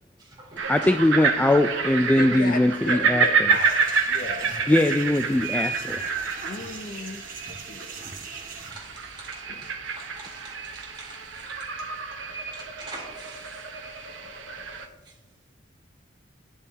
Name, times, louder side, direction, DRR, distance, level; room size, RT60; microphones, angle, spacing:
voice 1, 0.2-0.9 8.7-12.0 12.5-14.4 14.7-15.2, right 2 dB, 25° right, -4 dB, 3.6 m, -45 dB
sound 1, 0.6-14.9, right 5 dB, 80° right, 1.1 m, -28 dB
voice 2, 0.7-3.5 4.7-6.1, left 1 dB, 10° left, 7 dB, 0.3 m, -21 dB
voice 3, 2.2-3.8 4.1-4.5 6.5-8.0 9.5-9.6, left 3 dB, 50° left, 7 dB, 0.7 m, -35 dB
sound 2, 3.5-8.7, right 4 dB, 50° right, 1.7 m, -41 dB
11.0 x 11.0 x 2.8 m, 1.1 s
head